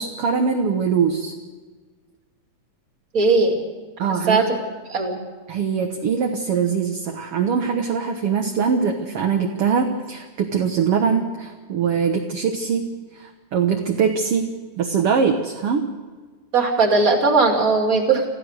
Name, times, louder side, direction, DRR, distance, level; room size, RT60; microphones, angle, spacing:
voice 1, 0.0-1.3 4.0-4.4 5.5-15.9, right 6 dB, 60° right, 3 dB, 1.9 m, -22 dB
voice 2, 3.1-3.6 4.3-4.4 4.9-5.2 16.5-18.3, right 3 dB, 30° right, 3 dB, 2.7 m, -18 dB
27.0 x 15.0 x 6.5 m, 1.4 s
omnidirectional pair, 3.4 m